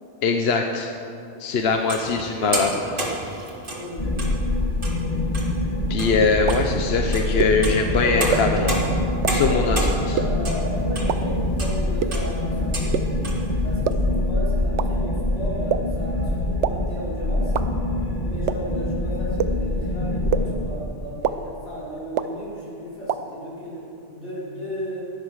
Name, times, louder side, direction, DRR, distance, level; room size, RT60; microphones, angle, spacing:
voice 1, 0.2-0.9 1.4-3.1 5.9-8.7 9.3-10.1, left 4 dB, 65° left, 4 dB, 1.1 m, -22 dB
sound 1, 1.5-4.4 4.7-5.0 5.3-5.7 6.0-6.2 6.5-6.6 7.1-11.2 11.6-11.8 12.1-12.3 12.7-12.9 13.2-13.4 13.9-14.0, right 1 dB, 50° right, 2.7 m, -31 dB
voice 2, 3.7-4.4 8.0-8.8 9.3-13.1 13.6-17.5 18.3-25.0, equal, 90° left, -8 dB, 5.1 m, -34 dB
sound 2, 4.0-20.5, left 1 dB, 35° left, 2.0 m, -25 dB
sound 3, 6.5-6.6 7.4-7.5 8.3-8.4 9.2-9.3 10.2-10.3 11.1-11.2 12.0-12.1 12.9-13.0 13.9-14.0 14.8-14.9 15.7-15.8 16.6-16.7 17.5-17.6 18.5-18.6 19.4-19.5 20.3-20.4 21.2-21.3 22.2-22.3 23.1-23.2, right 10 dB, 90° right, 1.0 m, -21 dB
16.5 x 11.0 x 6.4 m, 2.7 s
omnidirectional pair, 1.2 m